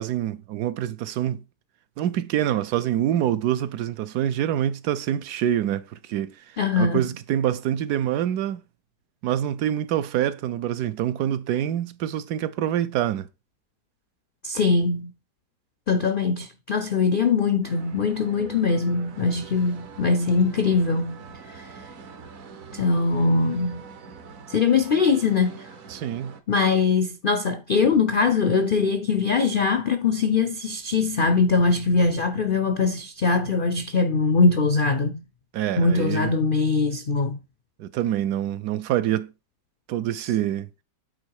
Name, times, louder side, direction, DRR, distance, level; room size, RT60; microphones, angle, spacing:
voice 1, 0.0-1.4 2.0-6.4 6.8-8.6 9.2-13.3 25.9-26.4 35.5-36.3 37.8-39.3 39.9-40.7, right 11 dB, 75° right, 1.1 m, -26 dB
voice 2, 6.6-7.1 14.4-15.1 15.9-21.2 21.5-21.7 22.7-23.9 24.5-25.7 26.5-35.2 35.8-37.4, left 4 dB, 70° left, 0.5 m, -22 dB
sound 1, 17.6-26.4, right 5 dB, 60° right, 1.3 m, -43 dB
8.5 x 4.5 x 4.7 m
omnidirectional pair, 1.8 m